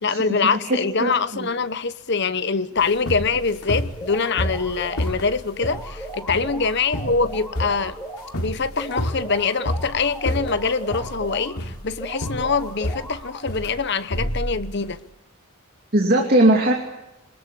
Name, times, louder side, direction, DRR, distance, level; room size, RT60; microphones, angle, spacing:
voice 1, 0.0-8.0 8.4-15.0, left 4 dB, 50° left, 1.0 m, -24 dB
voice 2, 0.6-1.5 15.9-16.7, right 1 dB, 40° right, 2.7 m, -19 dB
sound 1, 2.8-15.0, equal, 80° left, 3.6 m, -30 dB
sound 2, 4.0-5.2 5.6-8.4 8.8-11.6 12.0-13.5, right 1 dB, ahead, 4.4 m, -37 dB
23.0 x 21.0 x 8.4 m
head